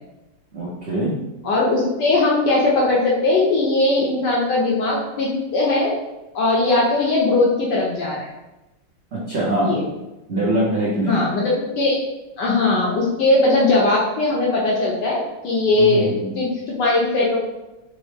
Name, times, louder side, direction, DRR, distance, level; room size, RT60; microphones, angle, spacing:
voice 1, 0.5-1.1 9.1-9.8 10.3-11.3 15.8-16.3, right 1 dB, 90° right, -9 dB, 0.5 m, -23 dB
voice 2, 1.4-5.9 6.3-8.3 9.6-9.8 11.1-12.0 12.4-17.4, left 2 dB, 70° left, -4 dB, 1.1 m, -19 dB
4.2 x 2.1 x 3.2 m, 1.0 s
omnidirectional pair, 2.4 m